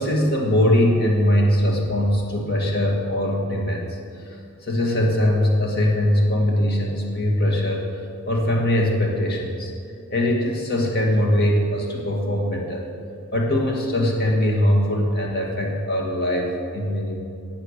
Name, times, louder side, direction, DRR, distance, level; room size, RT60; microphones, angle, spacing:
voice 1, 0.0-4.4 4.6-7.9 8.3-9.7 10.1-12.9 13.3-17.2, left 1 dB, 50° left, 0 dB, 2.1 m, -21 dB
17.5 x 7.3 x 6.7 m, 2.4 s
head